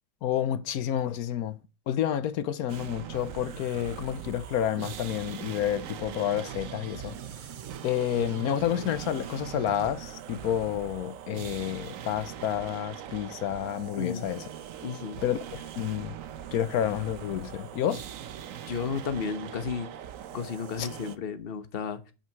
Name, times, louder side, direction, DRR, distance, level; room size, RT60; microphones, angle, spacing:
voice 1, 0.2-1.6 1.9-7.1 7.8-14.4 15.2-16.2 16.5-18.0 20.8-20.9, left 10 dB, 85° left, 1.2 m, -29 dB
sound 1, 2.7-21.2, right 9 dB, 70° right, 1.1 m, -41 dB
sound 2, 6.3-9.9, right 8 dB, 85° right, 0.4 m, -44 dB
voice 2, 13.9-14.2 14.8-15.2 18.7-19.9 20.3-22.1, left 6 dB, 45° left, 1.1 m, -33 dB
8.6 x 5.9 x 4.6 m
omnidirectional pair, 1.5 m